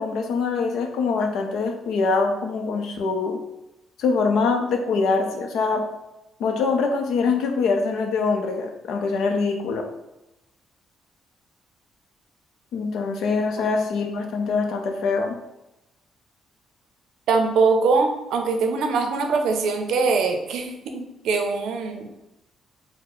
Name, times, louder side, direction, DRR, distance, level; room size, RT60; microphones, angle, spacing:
voice 1, 0.0-3.4 4.0-5.8 6.4-9.8 12.7-15.4, left 4 dB, 80° left, 4 dB, 0.6 m, -24 dB
voice 2, 17.3-22.1, right 4 dB, 80° right, 4 dB, 0.6 m, -22 dB
4.3 x 2.1 x 4.0 m, 0.91 s
cardioid pair, 90°, 0 cm